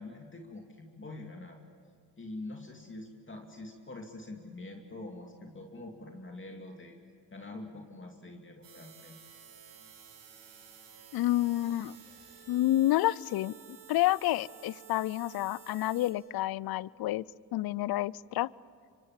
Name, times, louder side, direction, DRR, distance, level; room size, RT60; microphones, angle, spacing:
voice 1, 0.0-1.6 2.2-7.0 7.3-9.2, left 2 dB, 25° left, 2 dB, 2.5 m, -45 dB
sound 1, 8.6-16.1, right 8 dB, 75° right, 6.1 m, -53 dB
voice 2, 11.1-12.0 12.5-13.5 13.9-17.2 17.5-18.5, left 15 dB, 55° left, 24 dB, 0.6 m, -29 dB
25.5 x 24.5 x 7.5 m, 2.1 s
supercardioid pair, 60°, 43 cm